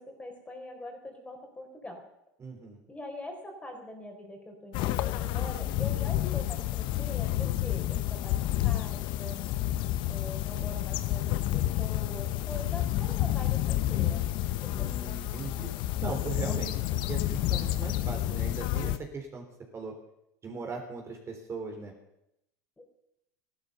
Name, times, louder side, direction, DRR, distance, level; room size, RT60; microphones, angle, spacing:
voice 1, 0.0-2.0 2.9-9.4 10.1-14.9 22.8-22.9, left 1 dB, 15° left, 3 dB, 4.2 m, -43 dB
voice 2, 2.4-2.8 9.5-10.2 10.6-10.8 14.7-15.7 16.0-16.7 17.1-19.4 19.7-19.9 20.4-21.9, right 4 dB, 30° right, 2 dB, 3.7 m, -39 dB
sound 1, 4.7-19.0, left 14 dB, 60° left, 0.9 m, -30 dB
14.0 x 12.5 x 6.7 m, 0.84 s
hypercardioid pair, 90°, 9 cm